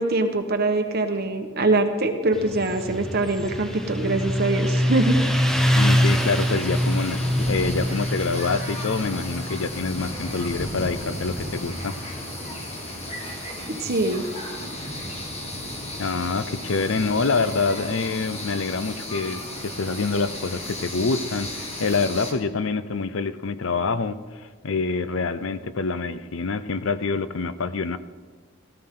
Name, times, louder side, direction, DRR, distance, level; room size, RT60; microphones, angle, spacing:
voice 1, 0.0-5.3 13.7-14.2, right 2 dB, 50° right, 6 dB, 1.2 m, -23 dB
Motorcycle, 2.3-13.4, equal, ahead, 0.9 m, -25 dB
voice 2, 5.7-12.0 16.0-24.2 24.6-28.0, left 4 dB, 70° left, 13 dB, 0.6 m, -26 dB
sound 1, 6.1-22.3, left 1 dB, 30° left, 1.8 m, -34 dB
17.0 x 13.5 x 3.8 m, 1.5 s
head